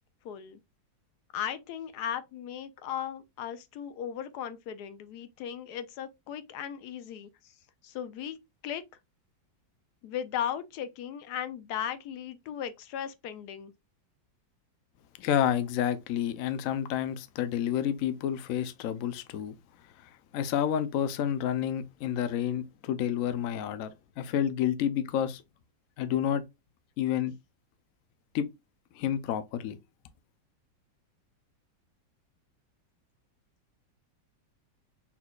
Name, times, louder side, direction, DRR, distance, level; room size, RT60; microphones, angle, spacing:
voice 1, 0.2-0.6 1.3-7.3 7.8-8.8 10.0-13.7, left 9 dB, 70° left, 1.0 m, -37 dB
voice 2, 15.2-19.6 20.3-25.4 26.0-26.5 27.0-27.3 28.3-28.5 28.9-29.8, left 9 dB, 85° left, 0.7 m, -29 dB
4.3 x 4.1 x 2.3 m
omnidirectional pair, 2.1 m